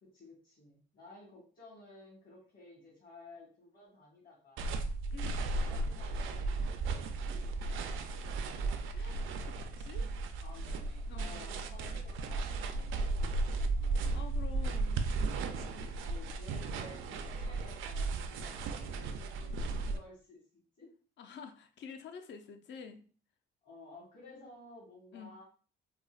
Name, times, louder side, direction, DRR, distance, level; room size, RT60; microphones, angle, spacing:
voice 1, 0.0-5.0 5.6-8.9 10.4-14.1 15.8-20.9 23.6-25.4, left 2 dB, 50° left, -6 dB, 1.5 m, -55 dB
sound 1, 4.6-20.0, right 3 dB, 80° right, 0.4 m, -35 dB
voice 2, 5.1-5.6 8.9-10.1 11.1-11.7 14.1-15.0 21.2-23.0 25.1-25.3, left 6 dB, 65° left, 6 dB, 0.6 m, -49 dB
4.2 x 2.1 x 2.4 m, 0.40 s
cardioid pair, 90°, 20 cm